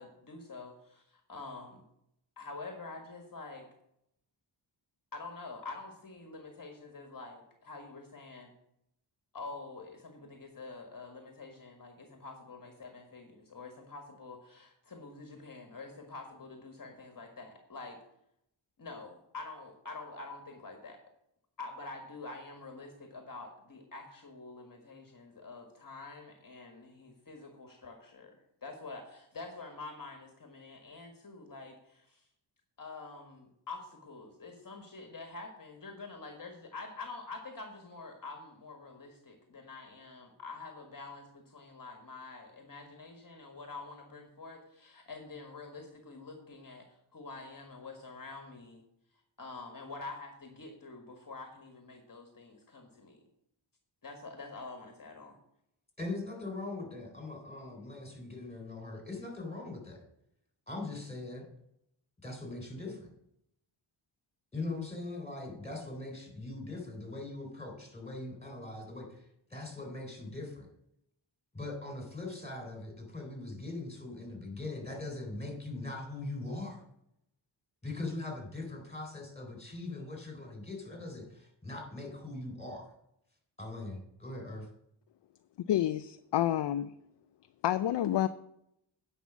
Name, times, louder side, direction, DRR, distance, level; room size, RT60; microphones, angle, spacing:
voice 1, 0.0-1.8 2.4-3.7 5.1-8.5 9.3-18.0 18.8-21.0 21.6-32.2 32.8-48.8 49.4-53.2 54.0-55.4, left 3 dB, 40° left, 3 dB, 1.6 m, -46 dB
voice 2, 56.0-60.0 60.7-61.5 62.2-63.1 64.5-69.3 69.5-70.7 71.5-76.8 77.8-82.9 83.6-84.7, left 2 dB, 15° left, 2 dB, 3.8 m, -41 dB
voice 3, 85.7-86.9 87.6-88.3, left 12 dB, 60° left, 11 dB, 0.5 m, -28 dB
9.4 x 5.6 x 7.1 m, 0.77 s
wide cardioid pair, 90°, 49 cm